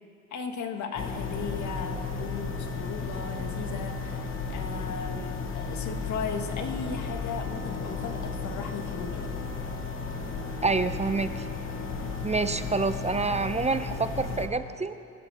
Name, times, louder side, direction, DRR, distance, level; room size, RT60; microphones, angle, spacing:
voice 1, 0.3-9.3, left 6 dB, 70° left, 4 dB, 1.8 m, -36 dB
sound 1, 1.0-14.5, left 4 dB, 45° left, 1.9 m, -34 dB
voice 2, 10.6-11.4 12.2-15.0, right 3 dB, 20° right, 11 dB, 0.6 m, -27 dB
25.0 x 16.5 x 3.5 m, 2.4 s
cardioid pair, 90°, 30 cm